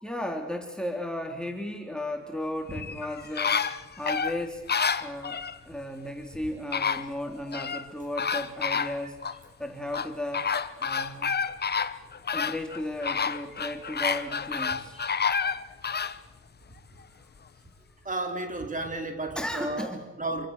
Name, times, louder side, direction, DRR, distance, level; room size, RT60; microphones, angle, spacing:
voice 1, 0.0-3.7 4.0-4.7 5.0-9.2 9.6-10.5 10.8-11.3 12.3-15.0 19.3-20.1, left 1 dB, 5° left, 4 dB, 3.2 m, -35 dB
sound 1, 2.7-5.6 6.3-6.4 6.7-7.8 8.2-9.4 9.9-16.2 16.7-16.8, left 6 dB, 35° left, 1.3 m, -29 dB
voice 2, 18.0-19.9 20.2-20.5, right 2 dB, 25° right, 5 dB, 4.4 m, -33 dB
27.5 x 24.5 x 6.7 m, 1.1 s
cardioid pair, 90°, 30 cm